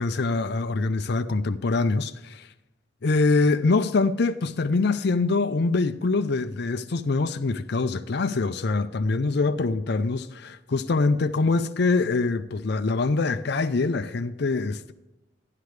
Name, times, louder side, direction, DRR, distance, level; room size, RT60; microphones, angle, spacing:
voice 1, 0.0-2.5 3.0-14.9, left 3 dB, 60° left, 0.5 m, -24 dB
13.5 x 10.5 x 3.2 m
head